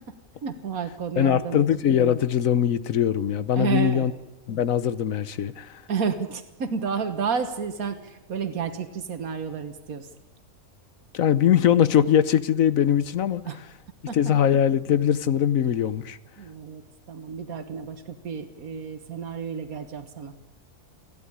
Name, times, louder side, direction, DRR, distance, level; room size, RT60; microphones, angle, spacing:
voice 1, 0.4-1.7 3.5-4.1 5.9-10.1 13.5-13.6 14.1-14.2 16.4-16.8 17.1-20.3, right 6 dB, 85° right, 7 dB, 1.9 m, -31 dB
voice 2, 1.2-4.1 4.5-5.8 11.1-13.6 14.1-16.2, left 9 dB, 70° left, 15 dB, 1.3 m, -21 dB
29.0 x 11.0 x 9.9 m, 1.1 s
omnidirectional pair, 1.5 m